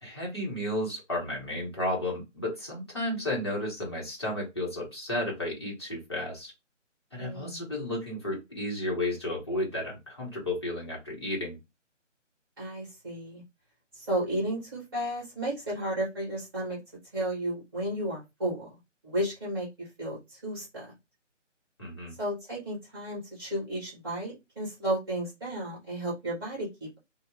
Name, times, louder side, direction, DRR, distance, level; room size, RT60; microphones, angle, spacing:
voice 1, 0.0-6.5 7.1-11.6 21.8-22.1, left 1 dB, 20° left, -4 dB, 0.8 m, -33 dB
voice 2, 7.2-7.7 12.6-13.4 13.9-16.8 17.1-18.8 19.0-20.8 22.2-27.0, right 1 dB, 20° right, -5 dB, 1.3 m, -33 dB
2.7 x 2.0 x 3.3 m, 0.22 s
figure-of-eight pair, 155°, 37 cm